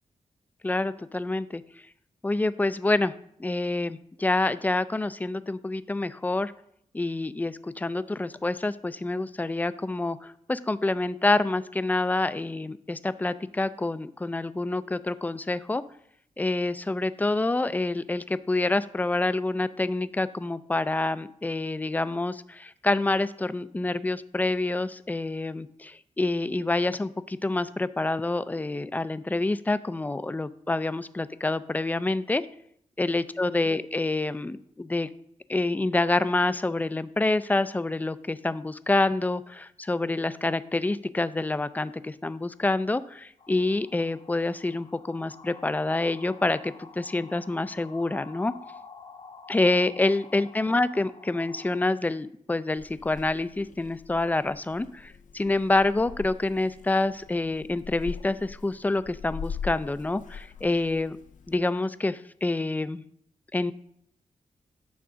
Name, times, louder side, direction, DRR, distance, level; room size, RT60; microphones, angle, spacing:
voice 1, 0.6-1.6 2.2-3.1 3.4-6.5 6.9-15.8 16.4-32.4 33.0-35.1 35.5-48.5 49.5-61.2 61.5-63.0 63.5-63.7, left 2 dB, 15° left, 14 dB, 0.3 m, -27 dB
sound 1, 43.4-51.8, left 4 dB, 55° left, 1.0 m, -49 dB
Purr / Meow, 52.8-61.6, left 6 dB, 85° left, 0.5 m, -42 dB
9.4 x 3.6 x 6.1 m, 0.69 s
wide cardioid pair, 110°, 13 cm